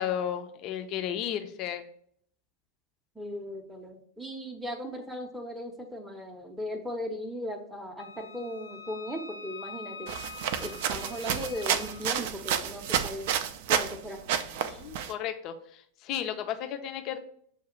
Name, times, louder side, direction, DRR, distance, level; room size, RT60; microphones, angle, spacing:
voice 1, 0.0-1.8 14.6-15.5 16.0-17.2, left 10 dB, 40° left, 8 dB, 0.5 m, -33 dB
voice 2, 3.1-10.1 10.6-13.3 13.7-14.2, equal, 5° right, 1 dB, 0.6 m, -37 dB
Wind instrument woodwind instrument, 8.0-12.0, left 4 dB, 80° left, 0.7 m, -45 dB
sound 1, 10.1-14.0 14.3-15.1, right 9 dB, 50° right, 0.3 m, -30 dB
6.9 x 2.3 x 2.9 m, 0.64 s
figure-of-eight pair, 90°, 0 cm